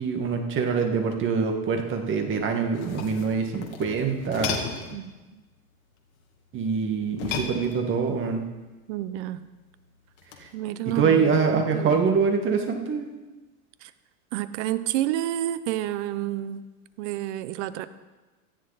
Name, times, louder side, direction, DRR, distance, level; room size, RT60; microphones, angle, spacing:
voice 1, 0.0-4.6 6.5-8.4 10.4-10.5 11.0-13.1, right 5 dB, 25° right, 4 dB, 2.0 m, -24 dB
sound 1, 2.6-5.0 7.1-8.1 10.2-10.5, left 6 dB, 45° left, 2.5 m, -34 dB
voice 2, 4.9-5.4 8.9-9.4 10.5-12.0 13.8-13.9 14.3-16.6 17.0-17.9, right 13 dB, 50° right, 14 dB, 1.0 m, -30 dB
17.5 x 14.0 x 4.2 m, 1.2 s
hypercardioid pair, 130°, 43 cm